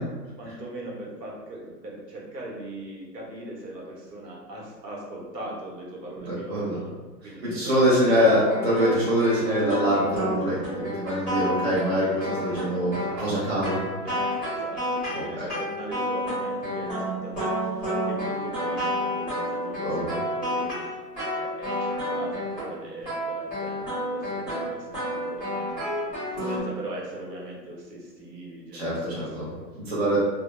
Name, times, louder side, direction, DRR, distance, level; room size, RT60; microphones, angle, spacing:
voice 1, 0.4-6.9 7.2-8.3 14.0-29.7, right 1 dB, 70° right, -3 dB, 1.0 m, -40 dB
voice 2, 6.3-6.8 7.4-12.9 13.2-13.8 15.1-15.5 19.8-20.2 28.7-29.5 29.9-30.2, equal, 40° right, -8 dB, 0.5 m, -24 dB
sound 1, 8.0-22.7 23.0-26.6, equal, ahead, 0.7 m, -30 dB
2.2 x 2.0 x 2.9 m, 1.2 s
hypercardioid pair, 175°, 50 cm